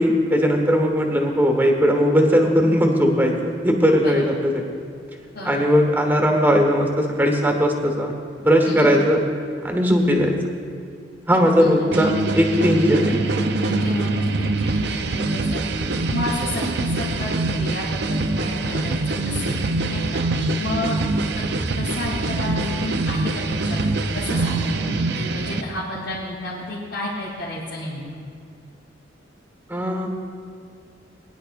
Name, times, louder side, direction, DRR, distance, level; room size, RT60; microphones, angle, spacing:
voice 1, 0.0-4.6 5.4-8.1 8.4-9.2 9.6-10.4 11.3-13.1 29.7-30.1, equal, 10° right, 2 dB, 1.4 m, -18 dB
voice 2, 11.6-11.9 13.6-15.8 16.1-21.0 21.3-21.4 21.8-28.0, left 1 dB, 70° left, -9 dB, 2.9 m, -31 dB
sound 1, 11.9-25.6, right 2 dB, 60° right, 0.6 m, -24 dB
21.0 x 10.5 x 2.6 m, 2.4 s
head